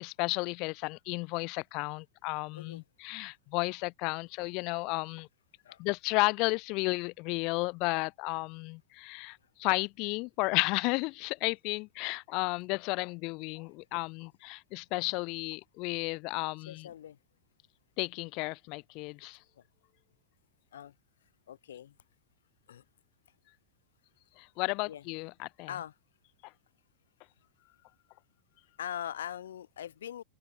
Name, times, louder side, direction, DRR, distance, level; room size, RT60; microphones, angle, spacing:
voice 1, 0.0-5.3 5.8-16.9 18.0-19.4 24.4-25.7, left 27 dB, 40° left, 1.6 m, -33 dB
voice 2, 16.7-17.2 20.7-20.9 21.5-22.0 22.7-22.8 24.9-25.0 25.7-25.9 28.8-30.2, left 10 dB, 60° left, 6.9 m, -41 dB
open air
figure-of-eight pair, 90°, 0 cm